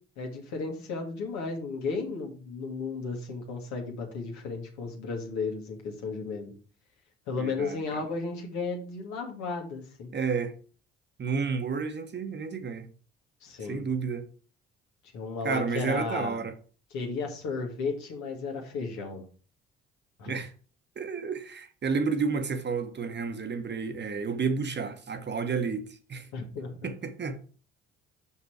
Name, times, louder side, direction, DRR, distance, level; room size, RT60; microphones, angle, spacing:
voice 1, 0.2-6.5 7.3-10.1 13.4-13.8 15.1-16.4 16.9-19.2 20.2-20.4 26.3-26.8, left 4 dB, 65° left, 2.0 m, -34 dB
voice 2, 7.4-8.0 10.1-10.5 11.2-12.9 13.7-14.3 15.4-16.5 20.3-20.5 21.0-26.3 26.8-27.4, right 5 dB, 35° right, 1.2 m, -31 dB
5.9 x 5.6 x 4.7 m
figure-of-eight pair, 50°, 30 cm